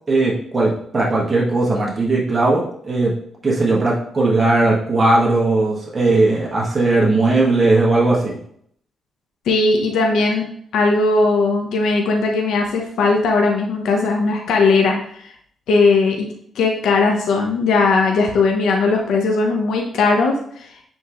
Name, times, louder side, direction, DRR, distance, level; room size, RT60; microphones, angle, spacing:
voice 1, 0.1-3.1 3.4-8.4, right 2 dB, 30° right, -4 dB, 1.6 m, -18 dB
voice 2, 9.5-15.3 15.7-16.3 16.5-20.8, left 3 dB, 90° left, 2 dB, 1.0 m, -18 dB
8.9 x 3.7 x 3.1 m, 0.66 s
cardioid pair, 110°, 0 cm